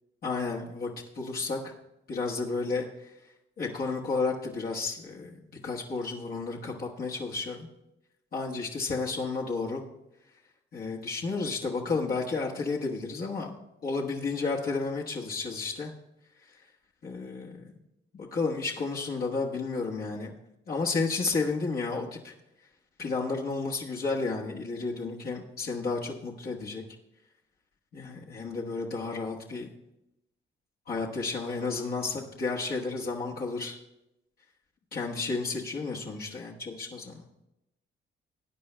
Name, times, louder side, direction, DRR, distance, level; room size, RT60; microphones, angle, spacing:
voice 1, 0.2-1.7 2.1-3.1 3.6-5.4 5.6-7.7 8.3-9.8 10.7-15.9 17.0-17.7 18.2-20.3 20.7-22.3 23.0-26.8 27.9-29.7 30.9-33.8 34.9-37.2, left 4 dB, 50° left, -3 dB, 1.3 m, -32 dB
19.5 x 9.5 x 2.2 m, 0.88 s
cardioid pair, 90°, 20 cm